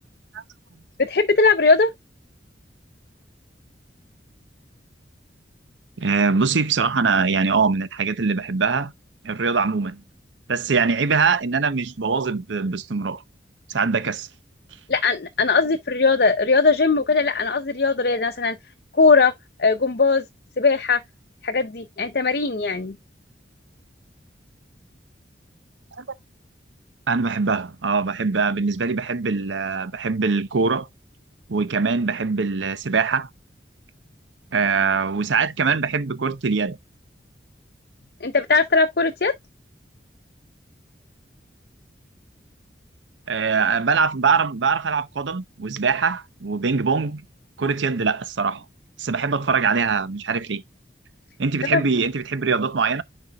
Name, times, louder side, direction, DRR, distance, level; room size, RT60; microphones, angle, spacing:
voice 1, 1.0-1.9 14.9-18.6 18.9-19.3 19.6-20.2 20.6-21.0 21.4-23.0 38.2-39.3 51.7-51.8, left 4 dB, 55° left, 0.7 m, -19 dB
voice 2, 6.0-8.9 9.2-10.0 10.5-13.2 13.7-14.3 26.0-26.1 27.1-30.9 31.5-33.3 34.5-36.8 43.3-47.2 47.6-48.6 49.0-50.6 51.4-53.0, right 5 dB, 80° right, 0.7 m, -22 dB
10.5 x 4.4 x 2.3 m
head